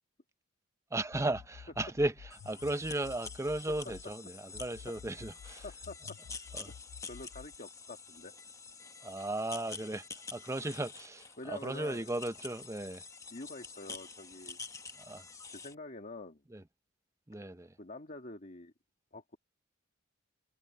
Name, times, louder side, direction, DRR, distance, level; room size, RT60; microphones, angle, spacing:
voice 1, 0.9-5.6 6.5-6.7 9.0-13.0 15.0-15.3 16.5-16.6 17.3-17.8, right 2 dB, 15° right, 0.7 m, -36 dB
sound 1, 1.1-4.1 4.5-7.6, left 7 dB, 80° left, 0.3 m, -52 dB
sound 2, 2.3-15.7, left 4 dB, 15° left, 1.0 m, -48 dB
voice 2, 5.6-6.7 7.1-8.3 11.4-12.0 13.3-14.6 15.5-16.4 17.8-18.7 19.1-19.4, left 2 dB, 40° left, 1.6 m, -47 dB
head